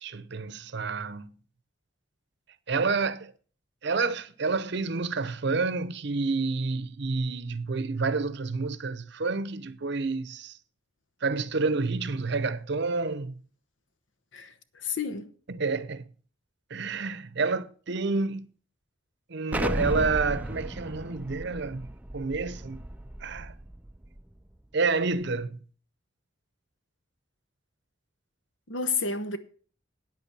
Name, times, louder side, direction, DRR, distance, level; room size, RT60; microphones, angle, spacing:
voice 1, 0.0-1.3 2.7-3.3 3.8-10.6 11.2-13.3 15.5-16.0 16.7-18.5 19.3-21.9 22.1-22.8 23.2-23.5 24.7-25.6, right 4 dB, 60° right, 0.7 m, -29 dB
voice 2, 14.3-15.3 28.7-29.4, left 4 dB, 70° left, 1.0 m, -31 dB
Explosion, 19.5-24.2, right 1 dB, 10° right, 0.4 m, -34 dB
9.2 x 8.2 x 6.0 m
head